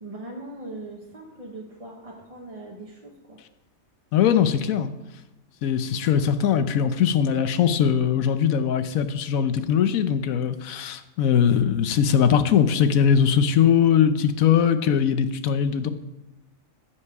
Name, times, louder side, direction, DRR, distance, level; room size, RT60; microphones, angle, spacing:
voice 1, 0.0-3.4 11.4-11.6, right 2 dB, 30° right, -1 dB, 1.0 m, -40 dB
voice 2, 4.1-4.9 5.6-15.9, left 8 dB, 90° left, 11 dB, 1.1 m, -21 dB
14.0 x 5.9 x 4.8 m, 0.98 s
omnidirectional pair, 1.4 m